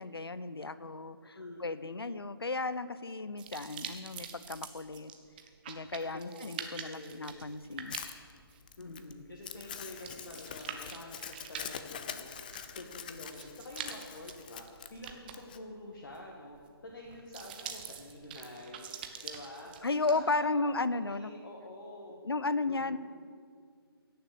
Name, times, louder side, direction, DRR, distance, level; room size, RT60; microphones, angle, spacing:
voice 1, 0.0-5.1 5.7-8.0 8.8-9.2 19.8-21.3 22.2-23.0, left 3 dB, 70° left, 15 dB, 0.7 m, -34 dB
voice 2, 1.2-1.7 6.0-7.3 8.8-12.3 12.8-16.6 16.8-18.9 19.2-19.7 20.1-22.2 22.7-23.0, left 1 dB, 50° left, -1 dB, 1.7 m, -47 dB
sound 1, 3.4-20.4, right 8 dB, 20° right, 0.7 m, -46 dB
Crumpling crinkling, 7.9-15.6, left 8 dB, 20° left, 0.4 m, -44 dB
17.0 x 6.8 x 6.8 m, 2.1 s
figure-of-eight pair, 145°, 13 cm